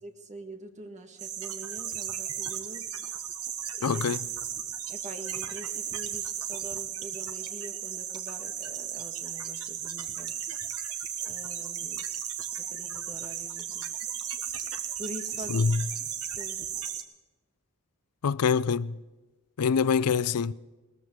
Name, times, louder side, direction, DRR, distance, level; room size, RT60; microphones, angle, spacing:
voice 1, 0.0-2.9 3.8-4.0 4.9-10.3 11.3-12.0 12.6-13.9 15.0-15.7 16.4-16.6, right 1 dB, 35° right, 1.8 m, -44 dB
sound 1, 1.2-17.0, right 9 dB, 70° right, 1.4 m, -35 dB
voice 2, 3.8-4.3 15.5-15.9 18.2-19.0 19.6-20.5, left 6 dB, 85° left, 0.5 m, -25 dB
20.0 x 14.0 x 4.8 m
head